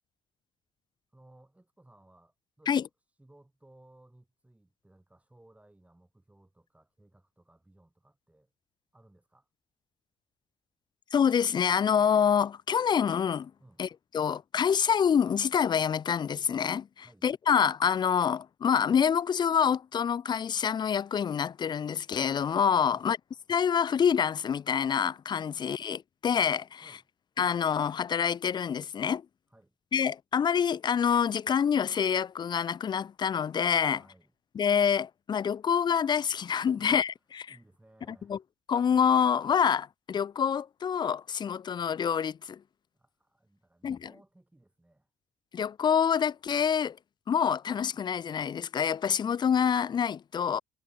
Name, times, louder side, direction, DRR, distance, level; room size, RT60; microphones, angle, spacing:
voice 1, 1.1-8.5 8.9-9.5 13.6-13.8 17.0-17.3 22.9-23.1 25.5-25.6 26.7-27.0 29.5-29.7 33.9-34.3 36.7-37.0 37.5-38.3 42.9-45.1, right 1 dB, 10° right, 4.6 m, -60 dB
voice 2, 11.1-13.5 13.8-13.9 14.1-23.2 23.5-26.9 27.4-29.3 29.9-34.0 34.5-37.6 38.1-38.4 38.7-42.6 43.8-44.1 45.5-47.0 47.3-50.6, left 7 dB, 30° left, 0.3 m, -27 dB
cardioid pair, 85°, 14 cm